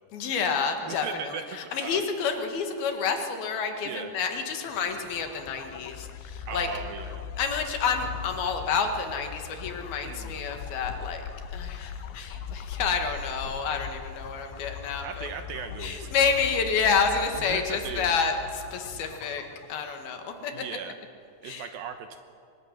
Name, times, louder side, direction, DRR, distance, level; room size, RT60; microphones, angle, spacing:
voice 1, 0.1-6.7 7.4-11.2 11.5-15.3 15.8-20.6 21.4-21.7, left 5 dB, 65° left, 5 dB, 3.6 m, -29 dB
voice 2, 0.9-1.4 1.8-2.0 3.9-4.1 6.5-7.2 10.0-10.4 15.0-16.2 17.4-18.2 18.9-19.0 20.5-21.0 21.4-22.2, right 7 dB, 70° right, 8 dB, 2.5 m, -38 dB
sound 1, 4.5-20.1, left 7 dB, 90° left, 3.3 m, -40 dB
24.0 x 19.5 x 10.0 m, 2.4 s
omnidirectional pair, 4.9 m